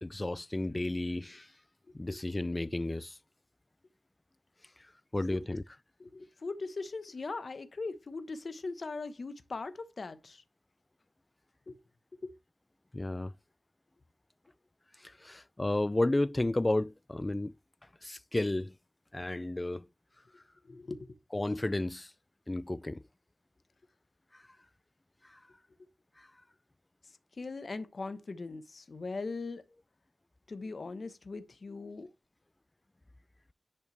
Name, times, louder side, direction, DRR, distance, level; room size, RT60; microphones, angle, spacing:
voice 1, 0.0-1.5 1.9-3.2 5.1-5.6 12.9-13.3 15.0-17.5 18.0-18.7 19.1-19.9 21.3-22.1 22.5-23.0 25.3-25.4 26.2-26.3, left 2 dB, 20° left, 0.4 m, -32 dB
voice 2, 6.0-10.4 11.7-11.8 12.2-12.3 20.6-21.2 25.8-25.9 27.0-29.6 30.5-32.1, left 3 dB, 55° left, 1.1 m, -40 dB
11.0 x 5.7 x 3.3 m
wide cardioid pair, 95°, 0 cm